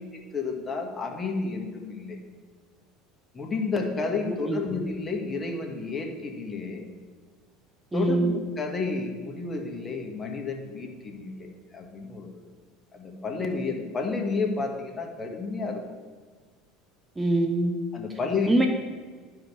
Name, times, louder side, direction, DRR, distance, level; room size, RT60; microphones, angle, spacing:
voice 1, 0.3-2.2 3.3-6.9 7.9-12.4 12.9-15.8 17.9-18.7, left 4 dB, 25° left, 2 dB, 1.6 m, -31 dB
voice 2, 4.3-4.6 7.9-8.4 17.2-17.8 18.5-18.7, right 2 dB, 15° right, 5 dB, 0.8 m, -24 dB
11.5 x 5.2 x 4.8 m, 1.5 s
hypercardioid pair, 90°, 0 cm